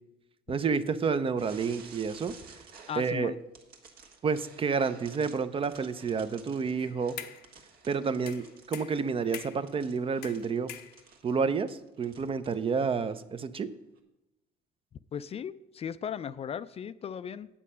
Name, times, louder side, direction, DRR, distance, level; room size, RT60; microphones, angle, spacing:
voice 1, 0.5-2.3 3.0-3.3 4.2-7.2 7.9-10.7 11.2-13.7, right 5 dB, 35° right, 12 dB, 0.5 m, -29 dB
sound 1, 1.4-3.3 3.5-12.6 13.0-13.2 14.0-14.1, right 5 dB, 65° right, 1.5 m, -53 dB
voice 2, 2.9-3.4 15.1-17.5, left 8 dB, 35° left, 14 dB, 0.4 m, -37 dB
sound 2, 6.8-7.5 8.3-9.7 10.2-11.3, left 11 dB, 90° left, 0.8 m, -44 dB
8.5 x 7.4 x 5.6 m, 0.93 s
cardioid pair, 110°, 17 cm